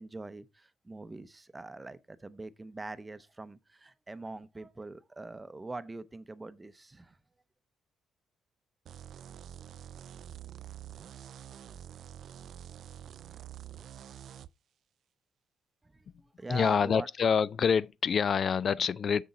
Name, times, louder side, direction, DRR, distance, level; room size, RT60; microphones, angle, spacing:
voice 1, 0.0-7.2 15.8-17.1, right 2 dB, 20° right, 0.6 m, -43 dB
sound 1, 8.9-14.5, right 10 dB, 70° right, 0.4 m, -47 dB
voice 2, 16.5-19.2, left 6 dB, 50° left, 0.3 m, -26 dB
6.9 x 6.4 x 4.1 m
cardioid pair, 90°, 0 cm